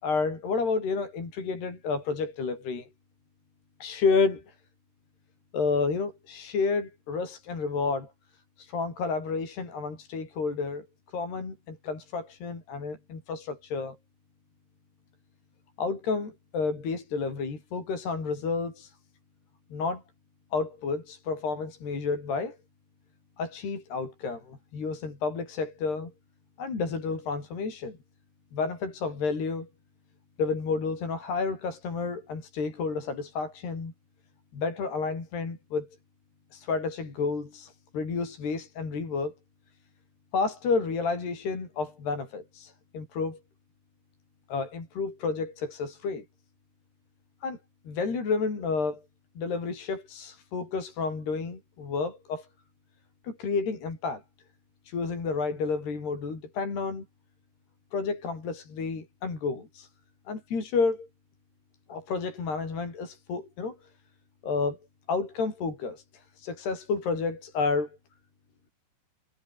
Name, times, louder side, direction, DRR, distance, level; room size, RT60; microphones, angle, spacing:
voice 1, 0.0-2.9 3.8-4.6 5.5-8.1 8.6-10.9 11.1-14.0 15.8-19.0 19.7-20.0 20.5-22.6 23.4-26.1 26.6-28.0 28.5-29.7 30.4-33.9 34.5-35.9 36.5-39.3 40.3-43.4 44.5-46.3 47.4-47.6 47.9-49.0 49.4-52.5 53.2-54.2 54.9-57.1 57.9-59.9 60.3-61.1 61.9-63.8 64.4-64.8 65.1-68.0, left 4 dB, 55° left, 8.6 m, -30 dB
omnidirectional pair, 5.6 m